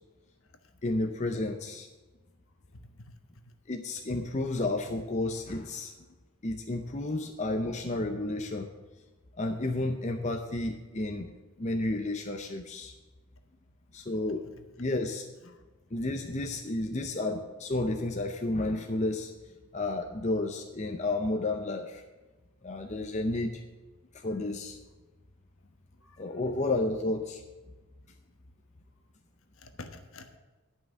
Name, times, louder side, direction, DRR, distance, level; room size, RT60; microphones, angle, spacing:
voice 1, 0.8-1.9 3.7-5.9 6.4-8.7 9.4-11.3 11.6-12.9 13.9-14.5 14.8-15.3 15.9-19.3 19.7-22.0 22.6-23.6 24.1-24.8 26.2-27.4, left 2 dB, 30° left, 4 dB, 0.6 m, -31 dB
voice 2, 2.7-3.1 4.4-4.5 14.5-14.6 15.5-15.6 26.0-26.4 29.6-30.4, left 2 dB, 65° left, 6 dB, 1.1 m, -49 dB
10.5 x 5.7 x 8.2 m, 1.2 s
head